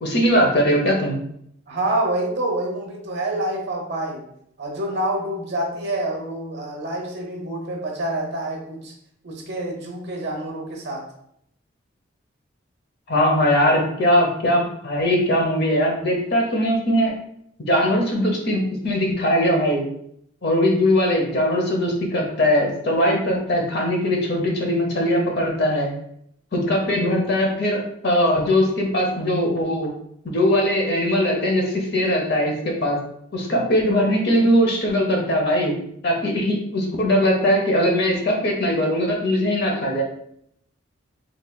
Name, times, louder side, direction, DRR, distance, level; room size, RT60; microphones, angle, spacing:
voice 1, 0.0-1.2 13.1-17.1 17.6-19.8 20.4-25.9 26.5-29.9 30.2-33.0 33.3-35.7 36.0-40.0, equal, 50° left, 0 dB, 0.8 m, -20 dB
voice 2, 1.7-4.2 4.6-8.9 9.2-11.1, right 1 dB, 55° right, 0 dB, 0.9 m, -27 dB
4.0 x 3.2 x 2.3 m, 0.71 s
head